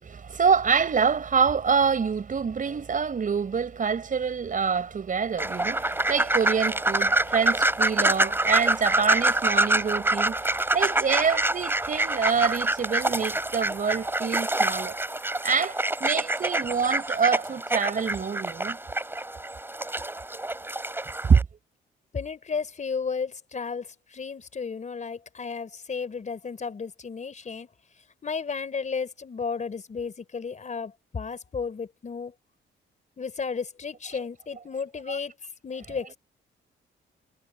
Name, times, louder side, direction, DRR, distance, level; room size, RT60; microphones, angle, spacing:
voice 1, 0.0-15.0 15.4-18.8 21.2-21.4 35.1-35.2, right 6 dB, 40° right, 5.8 m, -26 dB
sound 1, 5.4-21.4, right 2 dB, 10° right, 3.1 m, -26 dB
voice 2, 22.1-27.7 28.2-32.3 33.2-35.3 35.6-36.2, left 5 dB, 35° left, 4.1 m, -33 dB
cardioid pair, 90°, 20 cm